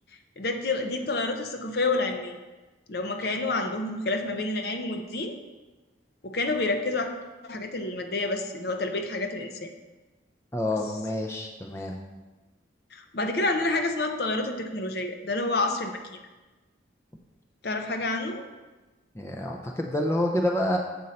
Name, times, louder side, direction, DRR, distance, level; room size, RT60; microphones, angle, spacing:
voice 1, 0.4-2.4 2.9-5.4 6.2-7.1 7.4-9.7 12.9-16.2 17.6-18.4, left 2 dB, 55° left, 5 dB, 0.6 m, -29 dB
voice 2, 10.5-12.0 19.1-20.8, left 1 dB, 15° left, 1 dB, 0.5 m, -28 dB
7.7 x 5.3 x 4.1 m, 1.2 s
head